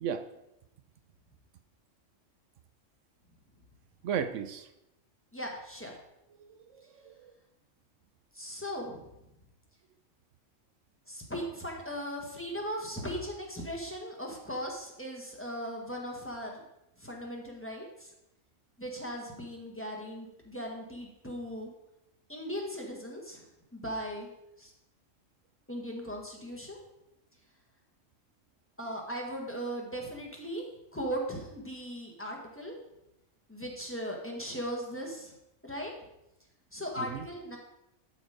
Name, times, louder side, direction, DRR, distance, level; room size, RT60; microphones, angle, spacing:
voice 1, 4.0-4.7 6.4-7.3 37.0-37.2, right 8 dB, 75° right, 9 dB, 1.0 m, -35 dB
voice 2, 5.3-5.9 8.3-9.0 11.1-16.6 17.0-18.1 18.8-21.7 22.3-23.5 23.7-24.3 24.6-24.7 25.7-26.8 28.8-30.6 30.9-32.7 33.5-35.3 35.6-35.9 36.7-37.6, equal, 10° left, 0 dB, 1.4 m, -38 dB
11.5 x 4.3 x 4.9 m, 0.87 s
omnidirectional pair, 1.3 m